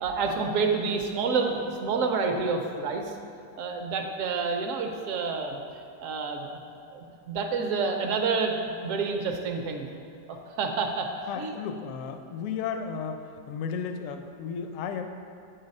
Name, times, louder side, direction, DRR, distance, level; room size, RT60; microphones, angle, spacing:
voice 1, 0.0-3.0 3.6-5.6 6.0-6.6 6.9-9.9 10.6-11.1 11.4-11.5, right 4 dB, 65° right, 4 dB, 0.9 m, -28 dB
voice 2, 11.3-15.0, left 6 dB, 75° left, 6 dB, 0.7 m, -34 dB
8.8 x 4.0 x 5.3 m, 2.6 s
omnidirectional pair, 1.9 m